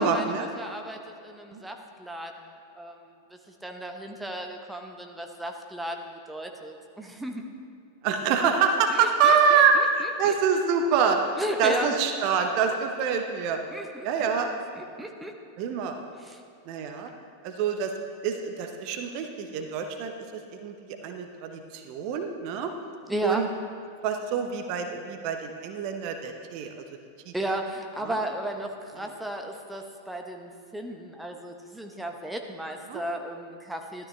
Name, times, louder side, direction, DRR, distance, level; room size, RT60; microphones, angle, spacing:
voice 1, 0.0-0.5 1.5-1.6 8.0-11.2 11.6-13.6 14.0-14.5 15.6-16.0 16.7-17.1 17.4-17.9 18.2-20.1 20.6-20.7 21.0-22.7 23.2-23.5 24.0-26.8 27.3-27.4 28.1-28.2 32.9-33.0, right 6 dB, 45° right, 5 dB, 0.9 m, -25 dB
voice 2, 0.5-7.5 8.9-10.4 11.4-11.9 13.7-14.3 14.7-15.4 16.2-16.4 23.1-23.5 27.3-34.1, right 1 dB, 5° right, 3 dB, 0.9 m, -35 dB
13.0 x 12.5 x 3.3 m, 2.5 s
figure-of-eight pair, 90°, 0 cm